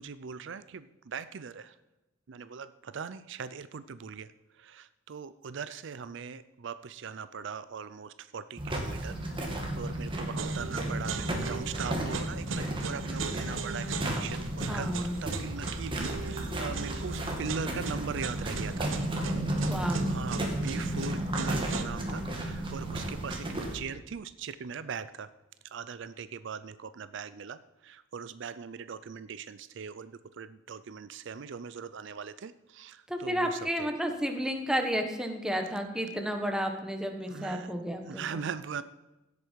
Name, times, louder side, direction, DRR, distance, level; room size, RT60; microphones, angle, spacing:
voice 1, 0.0-1.8 2.3-9.2 9.8-18.9 19.8-25.3 25.6-33.9 37.3-37.7 38.0-38.8, right 6 dB, 65° right, 14 dB, 0.5 m, -40 dB
sound 1, 8.6-23.8, right 1 dB, 25° right, 2.2 m, -33 dB
sound 2, 10.4-21.8, right 4 dB, 85° right, 1.0 m, -39 dB
voice 2, 14.7-15.2 19.7-20.1 33.1-38.4, equal, 5° right, 4 dB, 1.4 m, -32 dB
16.5 x 8.4 x 4.7 m, 1.0 s
head